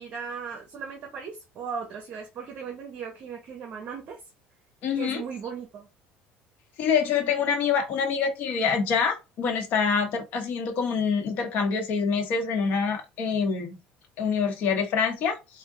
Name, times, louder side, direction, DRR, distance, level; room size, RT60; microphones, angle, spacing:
voice 1, 0.0-4.2 5.0-5.9, right 6 dB, 45° right, 0.9 m, -37 dB
voice 2, 4.8-5.2 6.8-13.8 14.2-15.4, left 6 dB, 55° left, 0.9 m, -26 dB
3.5 x 2.2 x 3.7 m
cardioid pair, 145°, 4 cm